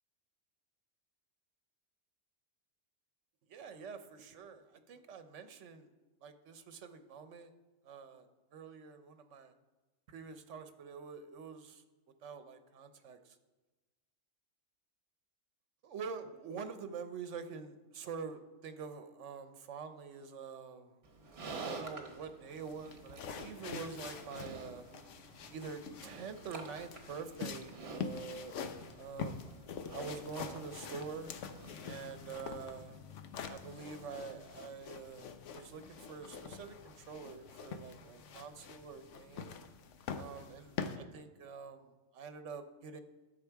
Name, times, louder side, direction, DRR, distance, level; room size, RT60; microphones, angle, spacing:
voice 1, 3.5-5.9 6.2-7.5 7.8-9.5 10.1-11.8 12.2-13.4 15.8-21.0 21.5-24.8 25.5-28.6 28.9-29.5 29.9-31.3 31.8-33.0 33.4-39.5 40.1-43.0, right 5 dB, 80° right, 9 dB, 1.1 m, -46 dB
Livestock farm animals working animals, 21.0-32.3, right 3 dB, 60° right, 1.5 m, -50 dB
sound 1, 22.5-41.0, left 6 dB, 80° left, 1.1 m, -45 dB
12.5 x 6.5 x 4.6 m, 1.2 s
omnidirectional pair, 1.2 m